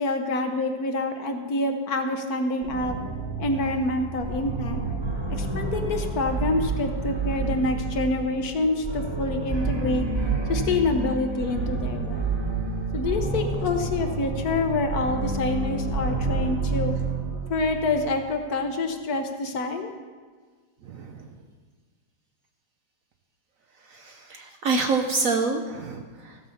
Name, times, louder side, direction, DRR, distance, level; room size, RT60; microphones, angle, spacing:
voice 1, 0.0-3.0 3.4-4.8 5.4-10.0 10.5-12.3 12.9-16.9 17.5-19.9, left 2 dB, 60° left, 6 dB, 1.2 m, -27 dB
sound 1, 2.6-18.3, right 3 dB, 20° right, 0.7 m, -29 dB
voice 2, 20.8-21.3 23.9-26.4, right 4 dB, 60° right, 5 dB, 0.9 m, -27 dB
15.5 x 5.6 x 7.0 m, 1.5 s
omnidirectional pair, 2.0 m